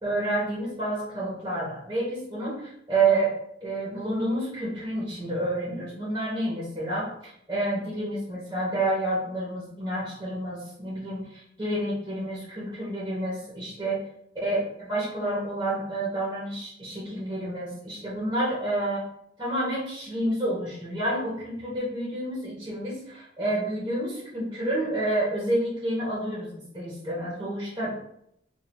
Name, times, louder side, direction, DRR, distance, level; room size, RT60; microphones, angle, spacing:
voice 1, 0.0-14.0 14.4-19.0 19.4-27.9, right 2 dB, 20° right, -8 dB, 1.3 m, -29 dB
4.4 x 2.8 x 2.7 m, 0.73 s
head